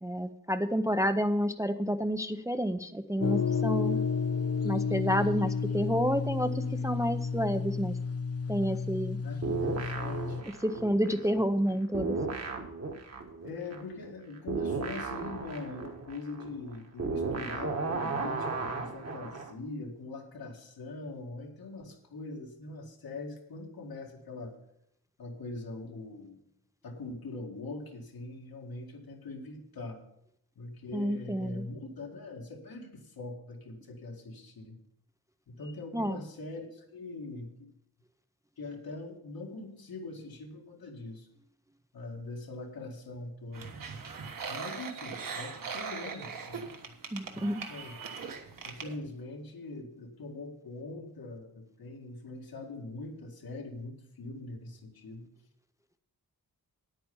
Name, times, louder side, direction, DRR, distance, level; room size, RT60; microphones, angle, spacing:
voice 1, 0.0-4.0 4.6-8.0 8.5-9.2 10.6-12.2 30.9-31.7 35.9-36.2 47.1-47.6, equal, 10° right, 8 dB, 0.5 m, -29 dB
sound 1, 3.2-10.4, left 5 dB, 40° left, 0.7 m, -31 dB
voice 2, 9.2-11.2 13.4-24.5 25.2-26.4 26.8-30.0 30.6-34.8 35.5-37.7 38.6-41.3 41.9-43.7 44.5-46.7 47.3-48.0 48.6-55.2, left 2 dB, 80° left, 2 dB, 2.1 m, -42 dB
sound 2, 9.4-11.7 11.9-19.5, right 4 dB, 45° right, 1.4 m, -35 dB
sound 3, 43.5-49.0, right 5 dB, 65° right, 1.4 m, -40 dB
9.9 x 9.0 x 5.5 m, 0.76 s
wide cardioid pair, 145°, 36 cm